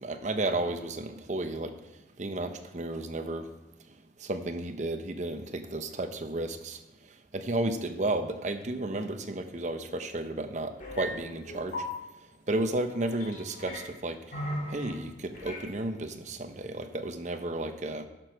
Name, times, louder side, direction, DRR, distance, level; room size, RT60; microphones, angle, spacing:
voice 1, 0.0-3.5 3.8-11.9 12.2-18.1, right 2 dB, 40° right, 8 dB, 0.7 m, -33 dB
sound 1, 10.8-11.1 11.4-11.9 12.9-13.8 14.3-14.9 15.3-15.7, equal, 50° left, 1.8 m, -37 dB
11.0 x 6.1 x 4.5 m, 1.0 s
head